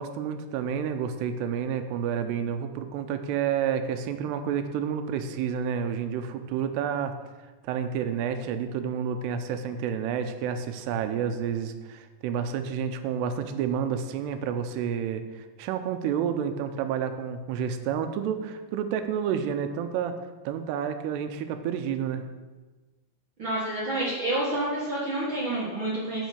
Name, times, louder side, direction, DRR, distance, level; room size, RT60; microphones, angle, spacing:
voice 1, 0.0-7.1 7.6-20.2 20.5-22.3, right 8 dB, 80° right, 8 dB, 2.7 m, -30 dB
voice 2, 23.4-26.3, right 1 dB, 55° right, -7 dB, 1.3 m, -29 dB
9.4 x 5.4 x 6.7 m, 1.2 s
omnidirectional pair, 4.9 m